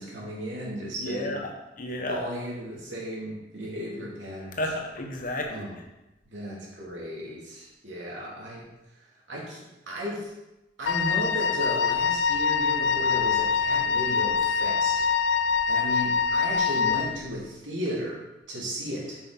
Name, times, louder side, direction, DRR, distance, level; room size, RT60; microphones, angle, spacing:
voice 1, 0.0-1.4 2.1-4.6 5.5-5.8 6.3-8.7 9.3-10.3 10.8-15.1 15.7-18.2 18.5-19.2, equal, 85° right, -4 dB, 2.5 m, -35 dB
voice 2, 1.0-1.5 1.8-2.2 4.6-5.7, left 1 dB, 45° left, 2 dB, 1.2 m, -31 dB
Wind instrument woodwind instrument, 10.9-17.2, left 6 dB, 80° left, 0.4 m, -24 dB
7.8 x 6.1 x 3.9 m, 0.97 s
head